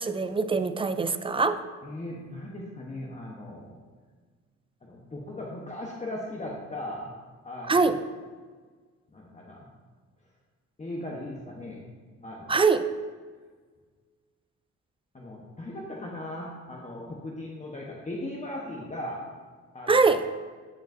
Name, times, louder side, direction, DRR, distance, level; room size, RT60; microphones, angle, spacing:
voice 1, 0.0-1.6 7.7-8.0 12.5-12.8 19.9-20.2, right 4 dB, 20° right, 10 dB, 0.4 m, -23 dB
voice 2, 1.8-3.8 4.8-7.1 7.4-7.8 9.1-9.7 10.8-11.9 12.2-12.6 15.1-19.3 19.7-20.2, left 1 dB, 25° left, -3 dB, 1.1 m, -38 dB
12.5 x 5.0 x 2.7 m, 1.5 s
cardioid pair, 90°, 30 cm